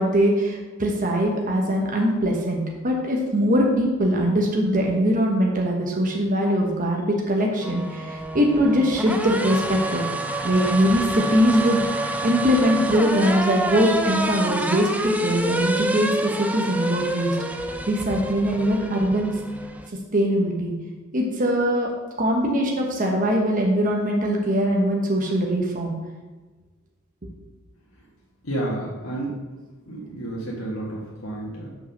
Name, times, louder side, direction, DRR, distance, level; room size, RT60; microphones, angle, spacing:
voice 1, 0.0-10.0 10.4-14.9 15.2-17.4 17.9-19.3 20.1-20.7 21.1-21.9 22.2-25.9, equal, 40° right, 0 dB, 1.2 m, -22 dB
sound 1, 7.6-19.9, right 2 dB, 5° right, 0.4 m, -28 dB
voice 2, 28.4-29.3 29.9-31.7, right 1 dB, 80° left, -5 dB, 1.5 m, -30 dB
5.9 x 5.2 x 6.6 m, 1.3 s
head